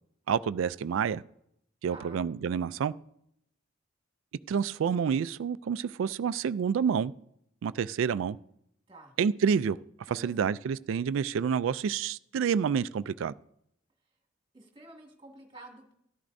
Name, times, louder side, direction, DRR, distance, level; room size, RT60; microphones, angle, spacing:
voice 1, 0.3-1.2 1.8-2.9 4.5-7.1 7.6-8.4 9.2-9.8 10.1-13.3, right 7 dB, 70° right, 0.3 m, -28 dB
voice 2, 1.9-2.2 8.9-9.1 10.1-10.3 14.5-15.9, right 2 dB, 25° right, 1.9 m, -50 dB
13.5 x 11.5 x 2.6 m
head